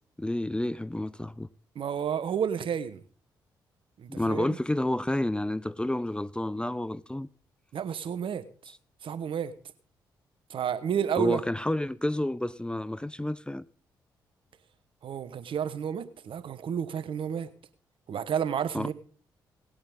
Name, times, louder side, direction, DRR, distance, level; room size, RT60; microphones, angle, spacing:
voice 1, 0.2-1.5 4.1-7.3 11.1-13.6 18.7-18.9, left 1 dB, 10° left, 0.6 m, -30 dB
voice 2, 1.7-3.0 4.0-4.6 7.7-8.4 9.0-9.5 10.5-11.4 15.0-17.5 18.1-18.9, right 8 dB, 60° right, 1.1 m, -31 dB
19.0 x 8.6 x 3.7 m
hypercardioid pair, 40°, 10 cm